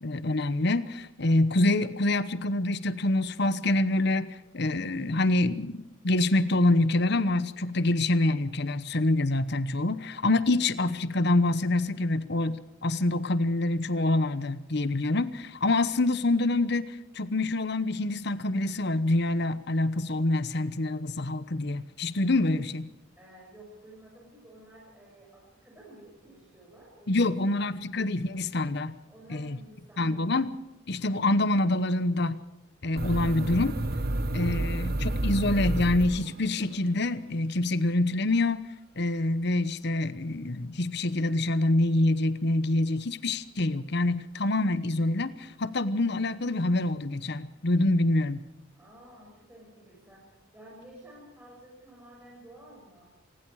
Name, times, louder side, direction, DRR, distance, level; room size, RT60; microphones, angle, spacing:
voice 1, 0.0-22.9 27.1-28.9 29.3-29.6 30.0-30.6 30.9-32.4 32.8-33.7 34.3-38.6 39.0-48.4, left 2 dB, 55° left, 14 dB, 1.0 m, -26 dB
voice 2, 23.2-27.7 29.0-30.2 48.7-53.1, right 1 dB, 10° right, -4 dB, 6.7 m, -52 dB
sound 1, 33.0-36.7, right 1 dB, 50° right, 1.1 m, -30 dB
27.0 x 20.0 x 4.9 m, 0.92 s
head